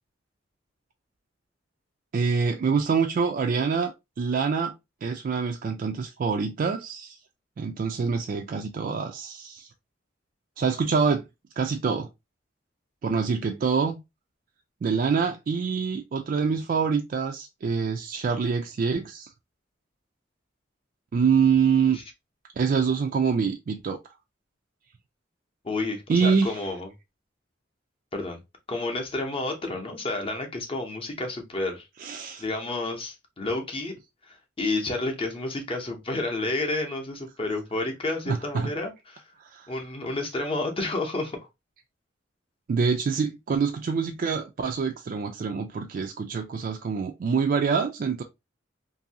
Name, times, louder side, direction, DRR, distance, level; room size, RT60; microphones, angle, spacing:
voice 1, 2.1-4.7 5.0-7.2 7.6-9.7 10.6-11.2 11.6-12.1 13.0-14.0 14.8-19.3 21.1-22.0 22.6-24.0 26.1-26.6 32.0-32.4 38.3-38.7 39.4-39.7 42.7-48.2, right 5 dB, 50° right, 0.3 m, -25 dB
voice 2, 25.6-26.9 28.1-28.4 28.7-31.9 32.4-33.9 34.3-39.2 39.7-41.4, left 2 dB, 30° left, 0.7 m, -30 dB
2.6 x 2.6 x 2.7 m
head